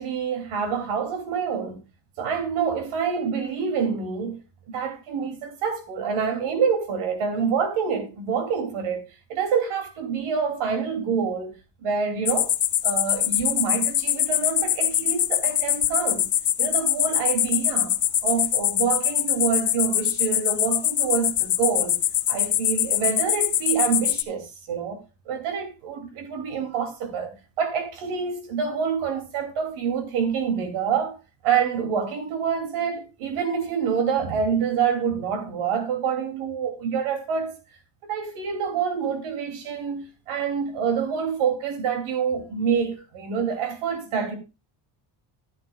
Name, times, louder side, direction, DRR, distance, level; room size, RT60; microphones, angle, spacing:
voice 1, 0.0-1.8 2.2-4.4 4.7-9.0 9.3-11.5 11.8-12.5 12.8-16.3 16.6-21.9 22.3-37.5 38.1-44.4, right 6 dB, 90° right, 2.7 m, -27 dB
sound 1, 12.3-24.2, left 12 dB, 40° left, 0.6 m, -23 dB
14.5 x 8.6 x 2.3 m
cardioid pair, 140°, 48 cm